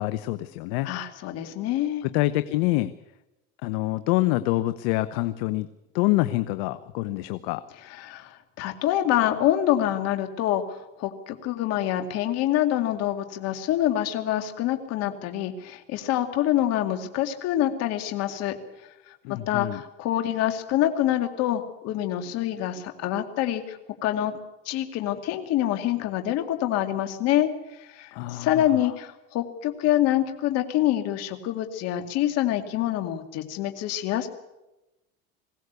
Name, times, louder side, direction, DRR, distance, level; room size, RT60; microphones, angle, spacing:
voice 1, 0.0-0.9 2.0-2.9 3.6-5.7 5.9-7.6 19.2-19.8 28.1-28.5, left 18 dB, 75° left, 13 dB, 0.9 m, -26 dB
voice 2, 0.8-2.0 7.9-18.6 19.1-24.4 24.7-27.5 27.8-34.3, left 12 dB, 55° left, 7 dB, 2.4 m, -26 dB
21.5 x 17.0 x 8.2 m, 0.97 s
supercardioid pair, 135°, 30 cm